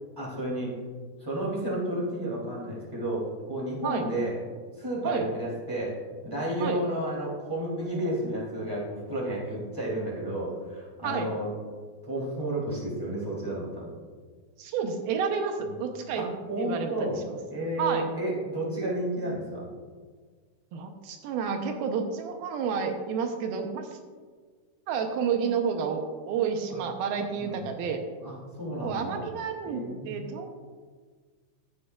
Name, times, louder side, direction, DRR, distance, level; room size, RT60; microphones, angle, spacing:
voice 1, 0.2-0.8 1.2-4.4 4.8-5.9 6.2-11.5 12.0-14.0 15.6-15.8 16.1-17.2 17.5-19.7 26.7-26.8 27.4-27.7 28.2-29.2 29.6-30.3, right 1 dB, 5° right, -5 dB, 2.4 m, -32 dB
voice 2, 14.6-16.3 16.6-17.1 17.8-18.1 20.7-23.9 24.9-28.0 28.8-30.5, right 6 dB, 75° right, 5 dB, 2.5 m, -30 dB
15.0 x 8.6 x 2.4 m, 1.5 s
omnidirectional pair, 4.5 m